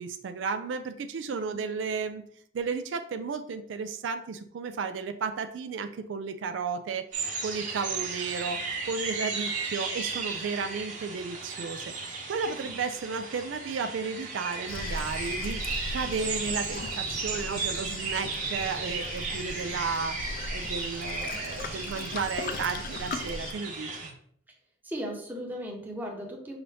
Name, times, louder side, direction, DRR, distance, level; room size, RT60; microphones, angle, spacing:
voice 1, 0.0-2.2 2.5-11.9 12.3-15.6 15.9-24.2, right 5 dB, 80° right, 9 dB, 0.4 m, -33 dB
sound 1, 7.1-24.1, right 4 dB, 45° right, 1.0 m, -35 dB
Waves surf, 14.7-23.5, left 3 dB, 50° left, 0.4 m, -38 dB
voice 2, 24.8-26.6, equal, 10° right, -1 dB, 0.9 m, -37 dB
5.7 x 2.6 x 3.3 m, 0.63 s
head